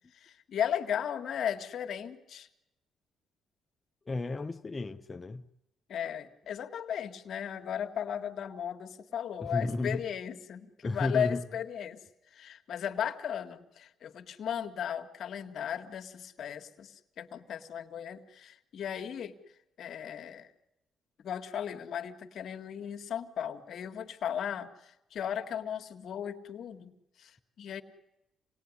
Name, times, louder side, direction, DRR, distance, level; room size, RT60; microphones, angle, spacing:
voice 1, 0.1-2.5 5.9-12.0 12.3-19.3 19.8-20.5 21.2-27.8, left 9 dB, 65° left, 1.9 m, -36 dB
voice 2, 4.1-5.4 9.4-10.0 10.8-11.4, left 3 dB, 25° left, 0.9 m, -33 dB
27.5 x 19.5 x 9.8 m
cardioid pair, 90°, 0 cm